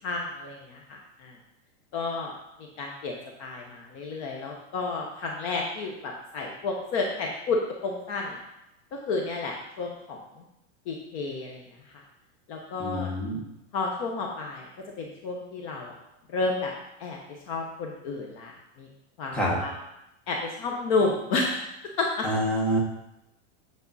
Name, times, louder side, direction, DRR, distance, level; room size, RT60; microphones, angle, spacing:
voice 1, 0.0-1.3 1.9-2.3 2.8-8.4 8.9-10.2 10.9-11.6 12.5-13.1 13.7-14.7 15.0-15.9 16.3-16.7 17.0-17.2 17.5-18.5 18.8-18.9 19.2-19.7 20.3-21.6 22.0-22.3, left 3 dB, 30° left, 0 dB, 0.8 m, -31 dB
voice 2, 12.8-13.4 19.3-19.6 22.2-22.8, equal, 5° left, -4 dB, 1.0 m, -26 dB
8.5 x 6.8 x 4.0 m, 0.86 s
supercardioid pair, 180°, 36 cm